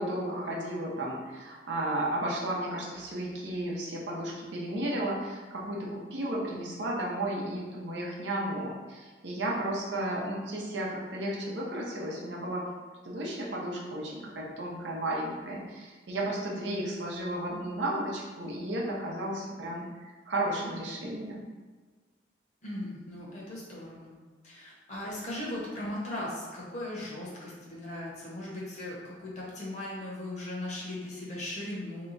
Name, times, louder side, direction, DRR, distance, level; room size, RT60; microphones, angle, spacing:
voice 1, 0.0-12.7 13.0-19.8 20.3-21.4, right 1 dB, 75° right, -3 dB, 0.7 m, -33 dB
voice 2, 22.6-24.1 24.4-32.1, left 1 dB, 40° left, -6 dB, 1.0 m, -38 dB
2.9 x 2.3 x 3.9 m, 1.4 s
head